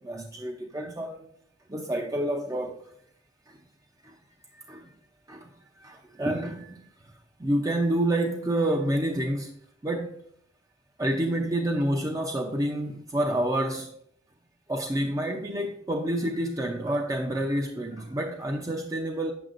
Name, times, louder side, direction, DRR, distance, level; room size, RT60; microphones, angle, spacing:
voice 1, 0.0-1.3 1.7-2.8 3.5-3.6 4.0-4.1 4.5-4.9 5.3-5.5 5.8-7.1 7.4-9.5 9.8-10.1 11.0-13.9 14.7-19.3, right 1 dB, 20° right, 0.6 m, -28 dB
8.8 x 7.7 x 2.5 m
head